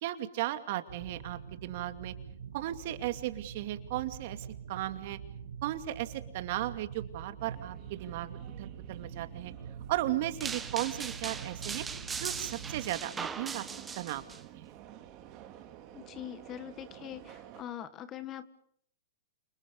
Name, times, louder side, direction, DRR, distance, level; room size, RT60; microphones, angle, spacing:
voice 1, 0.0-2.1 2.5-5.2 5.6-9.5 9.9-11.8 12.2-13.6 14.0-14.3 14.5-14.7, right 14 dB, 55° right, 8 dB, 2.5 m, -36 dB
sound 1, 0.9-12.9, right 7 dB, 80° right, 4.1 m, -45 dB
Subway metro underground, 7.4-17.6, right 11 dB, 40° right, 3.3 m, -52 dB
sound 2, 10.4-14.4, right 5 dB, 15° right, 1.9 m, -39 dB
voice 2, 15.9-18.5, left 11 dB, 30° left, 13 dB, 1.7 m, -43 dB
29.0 x 28.0 x 5.5 m, 0.65 s
hypercardioid pair, 125°, 0 cm